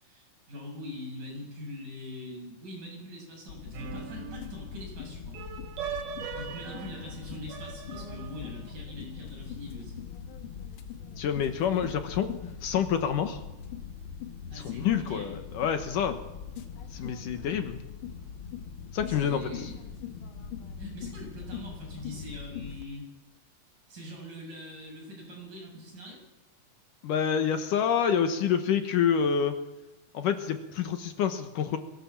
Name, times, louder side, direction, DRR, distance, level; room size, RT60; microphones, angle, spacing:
voice 1, 0.0-5.4 6.4-10.0 14.5-15.4 16.8-17.1 19.1-19.9 20.8-23.1 23.9-26.2, left 1 dB, 60° right, -1 dB, 8.9 m, -43 dB
sound 1, 3.5-22.8, left 7 dB, 85° left, 1.1 m, -41 dB
sound 2, 3.7-4.8 5.3-8.7, right 6 dB, 75° right, 3.9 m, -40 dB
voice 2, 11.2-12.3 12.6-13.4 14.5-16.2 16.9-17.8 18.9-19.7 27.0-29.5 30.1-31.8, left 8 dB, 70° left, 7 dB, 2.5 m, -27 dB
22.5 x 18.0 x 7.3 m, 0.98 s
omnidirectional pair, 4.3 m